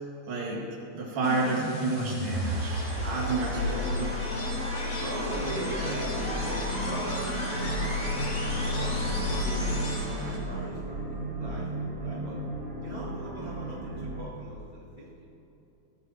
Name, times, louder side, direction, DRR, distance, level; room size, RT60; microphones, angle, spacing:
voice 1, 0.3-0.7 0.9-4.1, right 3 dB, 65° right, -3 dB, 3.8 m, -30 dB
sound 1, 1.2-10.4, left 2 dB, 50° left, 3.9 m, -32 dB
sound 2, 2.3-10.4, right 3 dB, 80° right, 3.9 m, -41 dB
voice 2, 3.5-4.0 4.8-7.3 7.7-12.4 12.8-15.3, equal, 20° left, -7 dB, 1.9 m, -41 dB
sound 3, 5.2-14.2, right 1 dB, 45° right, 1.7 m, -34 dB
21.0 x 16.5 x 3.0 m, 2.9 s
omnidirectional pair, 4.5 m